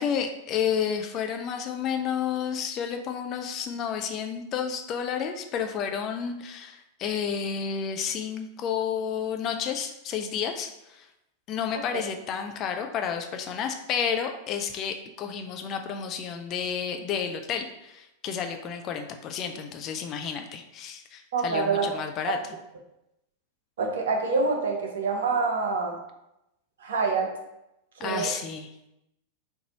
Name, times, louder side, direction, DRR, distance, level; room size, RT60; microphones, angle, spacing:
voice 1, 0.0-11.1 11.5-22.4 28.0-28.7, left 7 dB, 35° left, 5 dB, 0.5 m, -31 dB
voice 2, 21.3-21.9 23.8-26.0 26.8-27.4 28.0-28.3, right 4 dB, 60° right, 3 dB, 0.8 m, -26 dB
4.5 x 2.7 x 3.9 m, 0.88 s
figure-of-eight pair, 90°, 0 cm